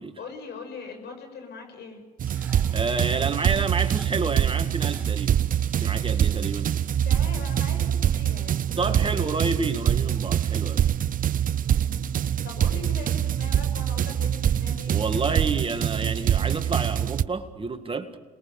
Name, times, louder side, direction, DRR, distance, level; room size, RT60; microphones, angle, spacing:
voice 1, 0.2-2.0 7.0-9.4 11.6-12.0 12.4-15.3, left 4 dB, 65° left, 7.1 m, -41 dB
sound 1, 2.2-17.2, right 10 dB, 45° right, 0.7 m, -24 dB
Frying (food), 2.3-7.9, right 2 dB, 10° right, 3.1 m, -50 dB
voice 2, 2.5-5.4 5.8-6.7 8.8-10.9 14.9-18.2, right 4 dB, 30° right, 1.8 m, -29 dB
27.5 x 21.0 x 7.1 m
supercardioid pair, 70°, 19 cm